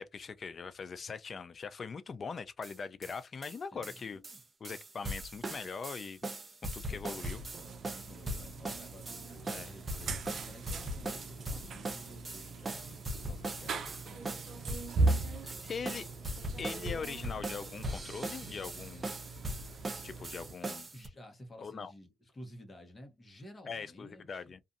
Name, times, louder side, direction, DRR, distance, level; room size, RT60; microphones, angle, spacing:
voice 1, 0.0-4.2 4.6-6.2 6.7-7.4 9.5-9.7 15.4-16.1 16.6-19.2 20.0-20.9 21.6-21.9 23.7-24.6, left 5 dB, 45° left, 0.4 m, -41 dB
sound 1, 2.6-2.7 3.0-3.2 3.4-3.6 3.8-21.1, right 1 dB, 25° right, 0.7 m, -40 dB
voice 2, 3.7-4.4 6.9-7.4 8.0-14.8 15.4-16.5 20.9-24.6, left 1 dB, 25° left, 1.1 m, -53 dB
sound 2, 7.2-20.5, right 3 dB, 60° right, 0.5 m, -39 dB
2.5 x 2.5 x 2.5 m
cardioid pair, 90°, 0 cm